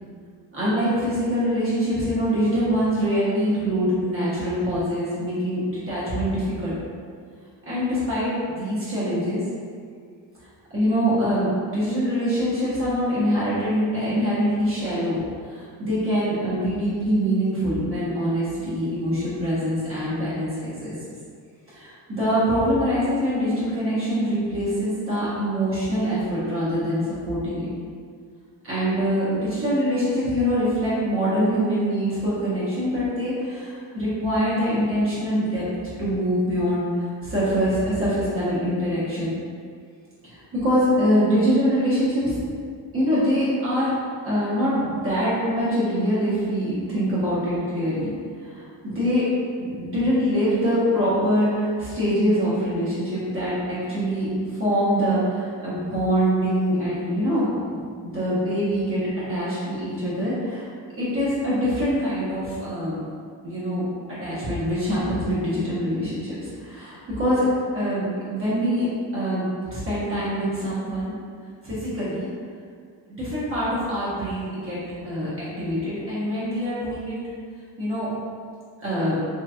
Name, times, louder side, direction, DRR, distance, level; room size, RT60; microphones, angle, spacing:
voice 1, 0.5-6.7 7.7-9.4 10.7-20.5 20.8-20.9 21.7-27.7 28.6-35.6 36.0-36.8 37.2-39.3 40.2-42.7 42.9-43.9 44.2-48.1 48.4-49.2 49.6-60.7 61.0-63.1 63.4-63.8 64.1-67.5 67.7-68.0 68.3-68.9 69.1-69.5 69.7-71.2 71.6-72.3 73.2-74.8 75.0-77.2 77.8-78.1 78.8-79.2, equal, 30° right, -10 dB, 1.0 m, -24 dB
3.0 x 2.9 x 2.4 m, 2.1 s
cardioid pair, 125°, 43 cm